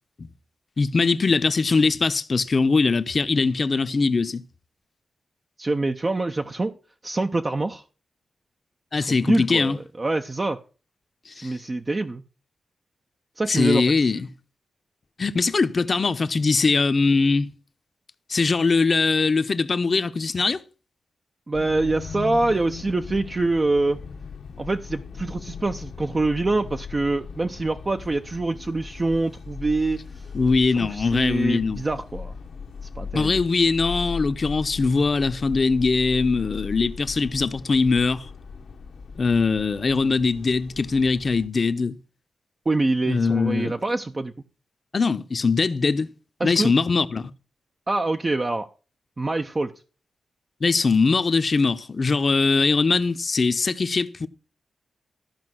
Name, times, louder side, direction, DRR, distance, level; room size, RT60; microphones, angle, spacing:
voice 1, 0.8-4.4 8.9-9.8 11.3-11.5 13.5-14.3 15.2-17.5 18.3-20.6 30.3-31.8 33.1-38.3 39.2-42.0 43.1-43.7 44.9-46.1 46.4-47.3 50.6-54.3, left 4 dB, 45° left, 0.8 m, -21 dB
voice 2, 5.6-6.7 7.0-7.8 8.9-10.6 11.3-12.2 13.4-14.1 21.5-24.0 24.6-30.0 30.8-32.3 33.0-33.4 42.7-44.3 46.4-46.7 47.9-48.7 49.2-49.7, right 2 dB, 30° right, 0.6 m, -25 dB
sound 1, 21.5-41.5, left 5 dB, 80° left, 1.1 m, -38 dB
13.0 x 5.3 x 6.1 m
cardioid pair, 85°, 0 cm